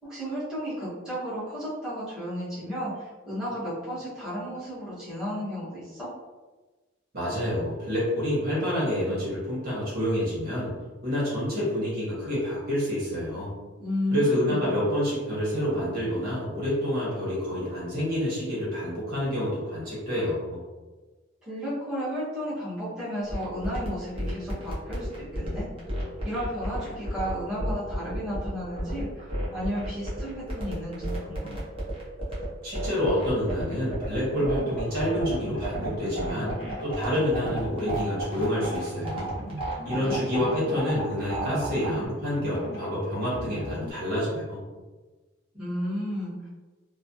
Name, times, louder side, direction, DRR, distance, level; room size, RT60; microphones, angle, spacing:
voice 1, 0.0-6.1 13.8-14.6 21.4-25.7 26.2-31.6 40.0-40.2 45.5-46.5, equal, 5° right, -13 dB, 1.2 m, -33 dB
voice 2, 7.1-10.7 11.0-13.5 14.1-20.6 32.6-36.5 36.8-39.3 39.8-44.6, equal, 50° right, -8 dB, 1.4 m, -28 dB
sound 1, 23.3-42.1, right 1 dB, 30° right, 0.8 m, -33 dB
sound 2, 34.3-43.9, equal, 65° left, 0.8 m, -38 dB
3.1 x 2.2 x 2.7 m, 1.2 s
head